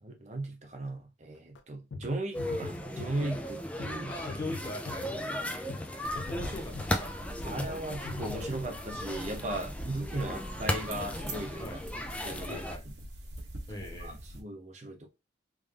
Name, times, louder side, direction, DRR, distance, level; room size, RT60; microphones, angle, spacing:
voice 1, 0.0-4.1 5.1-5.4 6.2-6.3 7.4-11.7 12.2-12.7 14.0-15.1, right 2 dB, 40° right, 0.6 m, -37 dB
sound 1, 1.6-1.7 1.9-2.1 2.4-3.5 3.8-4.0 4.3-5.4 5.7-5.9 6.2-7.3 7.6-8.7, left 4 dB, 80° left, 0.4 m, -42 dB
sound 2, 2.3-12.8, left 1 dB, 5° left, 0.4 m, -37 dB
voice 2, 4.0-5.5 6.1-7.1 7.4-7.6 11.6-11.8 12.5-12.8 13.7-14.2, left 1 dB, 25° left, 1.2 m, -41 dB
sound 3, 6.0-14.4, right 1 dB, 65° right, 1.4 m, -43 dB
3.6 x 2.6 x 3.2 m
head